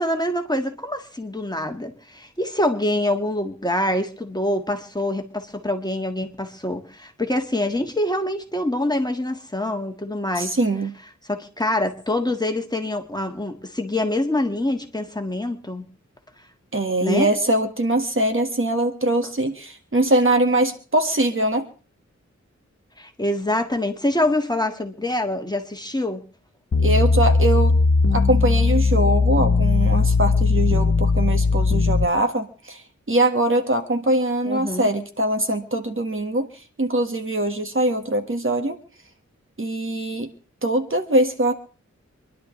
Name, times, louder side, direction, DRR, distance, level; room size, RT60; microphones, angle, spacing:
voice 1, 0.0-10.5 11.3-15.9 17.0-17.3 23.0-26.2 34.4-34.9, left 1 dB, 15° left, 1.8 m, -25 dB
voice 2, 10.4-10.9 16.7-21.7 26.8-27.8 28.1-32.8 33.1-36.5 36.8-38.8 39.6-40.3 40.6-41.5, right 1 dB, 45° right, 1.7 m, -22 dB
sound 1, 26.7-32.1, left 4 dB, 60° left, 1.3 m, -18 dB
26.5 x 11.5 x 3.2 m
wide cardioid pair, 65°, 29 cm